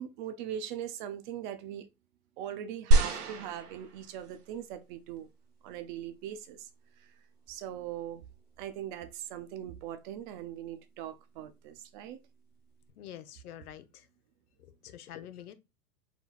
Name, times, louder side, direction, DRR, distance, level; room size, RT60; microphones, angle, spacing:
voice 1, 0.0-1.9 2.4-5.3 5.6-6.7 7.0-7.1 7.5-8.2 8.6-12.2, right 10 dB, 35° right, 0.5 m, -40 dB
sound 1, 2.9-4.4 5.2-5.3, right 2 dB, 90° right, 1.3 m, -26 dB
voice 2, 13.0-14.1 14.8-15.6, left 11 dB, 80° left, 0.9 m, -46 dB
4.4 x 4.0 x 2.3 m
hypercardioid pair, 135°, 44 cm